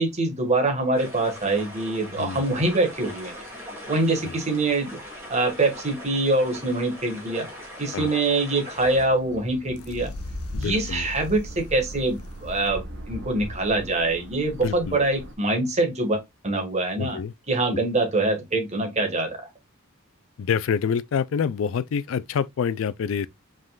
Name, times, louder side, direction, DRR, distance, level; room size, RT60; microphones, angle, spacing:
voice 1, 0.0-3.3 3.9-5.0 5.3-7.5 7.8-10.1 10.5-17.2 17.5-19.5, right 2 dB, 30° right, 1.5 m, -24 dB
sound 1, 0.9-9.1, left 1 dB, 10° right, 1.8 m, -40 dB
voice 2, 7.9-8.2 10.5-11.1 14.6-15.0 17.0-17.3 17.7-17.8 20.4-23.3, left 6 dB, 65° left, 0.3 m, -27 dB
sound 2, 8.8-15.3, equal, 55° right, 1.2 m, -39 dB
sound 3, 9.7-12.7, left 2 dB, 85° left, 0.8 m, -39 dB
5.3 x 3.7 x 2.3 m
head